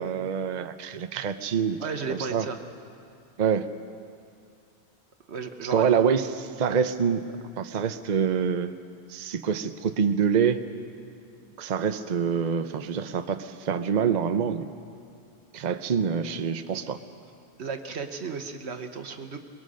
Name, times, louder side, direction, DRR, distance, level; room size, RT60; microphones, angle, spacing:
voice 1, 0.0-1.8 2.1-2.4 3.4-3.7 5.6-7.2 7.6-8.7 9.1-10.6 11.6-14.7 15.5-17.0, right 7 dB, 45° right, 9 dB, 0.8 m, -26 dB
voice 2, 1.8-2.6 5.3-5.9 17.6-19.4, right 5 dB, 80° right, 7 dB, 1.4 m, -34 dB
23.5 x 21.0 x 6.4 m, 2.4 s
omnidirectional pair, 1.1 m